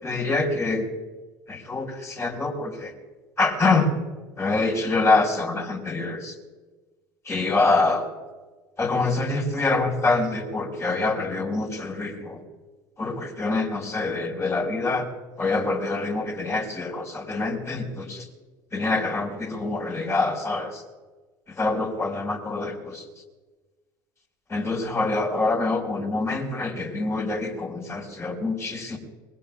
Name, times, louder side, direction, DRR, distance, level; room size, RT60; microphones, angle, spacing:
voice 1, 0.0-0.8 1.5-2.9 3.4-3.9 4.4-6.3 7.2-8.1 8.8-12.4 13.0-15.0 15.4-18.3 18.7-20.8 21.5-23.0 24.5-29.0, left 3 dB, 25° left, 1 dB, 5.0 m, -25 dB
25.0 x 22.0 x 2.4 m, 1.3 s
figure-of-eight pair, 65°, 11 cm